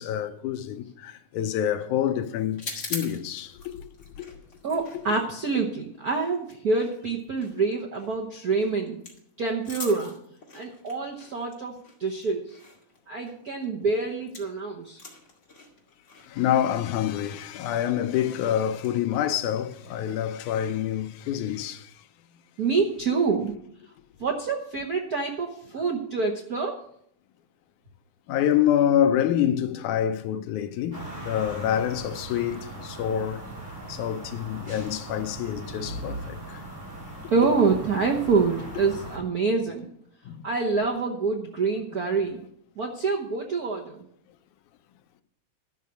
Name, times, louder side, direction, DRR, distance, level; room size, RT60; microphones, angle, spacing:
voice 1, 0.0-3.7 16.3-21.8 28.3-33.4 33.9-36.4 40.3-40.4, left 10 dB, 85° left, 2.3 m, -27 dB
sound 1, 2.5-14.6 14.9-20.2, left 3 dB, 25° left, 2.4 m, -44 dB
voice 2, 4.6-9.0 9.4-10.1 10.5-12.6 13.1-15.0 22.6-23.5 24.2-26.8 37.3-39.9 40.4-42.4 42.8-44.0, right 4 dB, 70° right, 0.8 m, -26 dB
sound 2, 30.9-39.2, right 1 dB, 25° right, 4.9 m, -39 dB
12.5 x 6.4 x 8.3 m
omnidirectional pair, 3.4 m